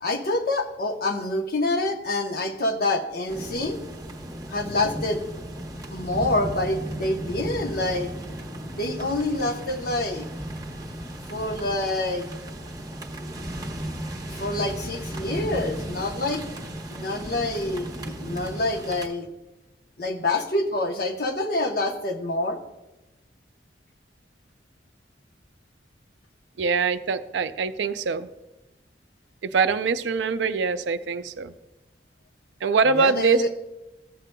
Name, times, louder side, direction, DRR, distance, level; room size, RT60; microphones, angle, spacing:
voice 1, 0.0-3.8 4.5-5.2 5.9-8.1 8.7-10.3 11.3-12.3 14.3-16.5 16.9-19.3 20.0-22.6 32.9-33.5, left 2 dB, 55° left, 3 dB, 0.9 m, -27 dB
sound 1, 3.3-19.1, right 1 dB, 20° right, 0.8 m, -35 dB
voice 2, 26.6-28.3 29.4-31.5 32.6-33.5, right 5 dB, 80° right, 12 dB, 0.4 m, -23 dB
14.5 x 7.5 x 2.3 m, 0.98 s
head